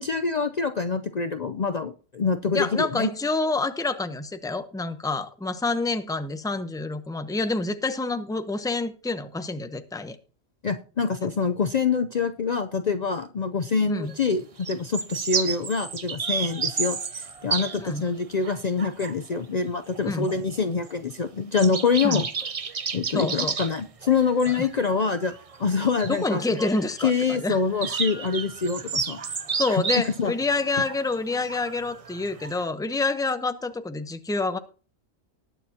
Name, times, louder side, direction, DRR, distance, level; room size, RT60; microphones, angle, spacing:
voice 1, 0.0-3.1 10.6-22.3 22.9-25.3 25.6-26.7 27.0-29.2 29.7-30.3, left 5 dB, 45° left, 0.6 m, -25 dB
voice 2, 2.5-10.2 13.9-14.1 17.8-18.0 20.0-20.3 22.0-22.2 23.1-23.6 24.5-24.7 26.1-27.6 29.6-34.6, left 3 dB, 5° left, 0.7 m, -27 dB
sound 1, 14.1-14.3 14.6-18.1 18.4-19.5 19.9-20.4 20.8-21.0 21.3-21.4 21.6-32.7, right 5 dB, 40° right, 0.7 m, -32 dB
19.5 x 6.9 x 2.8 m
omnidirectional pair, 1.1 m